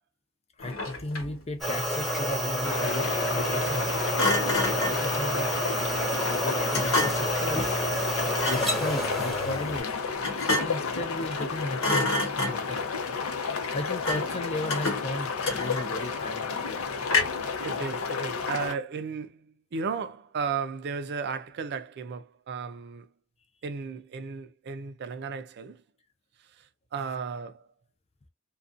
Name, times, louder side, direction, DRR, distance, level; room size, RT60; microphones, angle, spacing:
Thump thud, 0.6-1.4 4.2-5.1 6.7-7.4 8.3-8.8 10.2-10.9 11.3-11.5 11.8-12.8 14.0-14.4 14.7-16.1 17.1-17.5, left 2 dB, 75° left, 1.2 m, -29 dB
voice 1, 0.6-4.0 4.5-7.9 8.4-9.9 10.6-12.9 13.7-16.9, left 2 dB, 30° left, 0.5 m, -35 dB
sound 1, 1.6-9.8, equal, ahead, 0.9 m, -29 dB
sound 2, 2.6-18.7, left 5 dB, 90° left, 0.6 m, -32 dB
voice 2, 17.6-23.1 23.6-25.8 26.4-27.7, right 5 dB, 55° right, 0.4 m, -35 dB
2.5 x 2.2 x 2.4 m
head